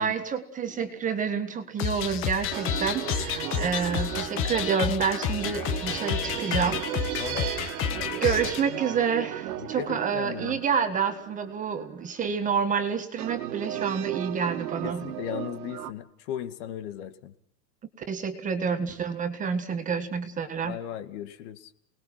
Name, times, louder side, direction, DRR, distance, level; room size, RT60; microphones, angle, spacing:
voice 1, 0.0-6.9 7.3-7.7 8.2-15.1 18.0-20.8, right 6 dB, 15° right, 7 dB, 1.7 m, -28 dB
sound 1, 0.7-1.2 2.5-12.2 13.2-15.9, right 13 dB, 60° right, 2.2 m, -35 dB
sound 2, 1.8-8.6, left 9 dB, 25° left, 1.4 m, -30 dB
voice 2, 7.2-7.5 9.6-10.6 14.8-17.3 20.6-21.7, left 10 dB, 45° left, 10 dB, 2.2 m, -36 dB
29.5 x 20.5 x 6.0 m, 0.65 s
supercardioid pair, 150°, 50 cm